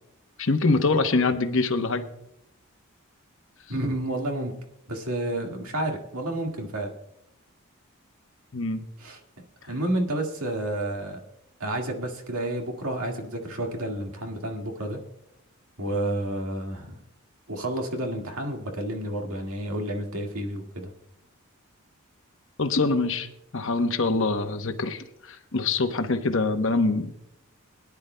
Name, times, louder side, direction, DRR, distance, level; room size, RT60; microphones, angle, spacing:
voice 1, 0.4-2.1 8.5-8.8 22.6-23.3 23.5-27.1, left 3 dB, 60° left, 8 dB, 0.9 m, -24 dB
voice 2, 3.7-4.6 4.9-6.9 9.0-9.2 9.6-11.2 11.6-15.0 15.8-17.0 17.5-20.9, right 1 dB, 85° right, 2 dB, 1.9 m, -30 dB
22.0 x 10.5 x 2.2 m, 0.80 s
head